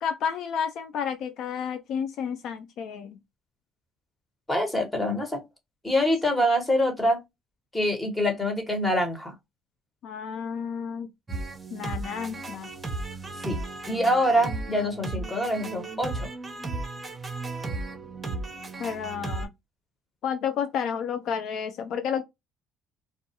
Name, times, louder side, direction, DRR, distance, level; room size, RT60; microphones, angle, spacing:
voice 1, 0.0-3.2 10.0-11.1 11.7-12.7 18.8-19.5 20.2-22.2, left 7 dB, 70° left, 0.4 m, -31 dB
voice 2, 4.5-5.4 5.8-7.2 7.7-9.3 13.4-13.6 13.9-16.3, equal, 15° left, 1.2 m, -25 dB
sound 1, 11.3-19.5, right 3 dB, 20° right, 0.8 m, -35 dB
2.3 x 2.3 x 2.7 m
supercardioid pair, 90°, 0 cm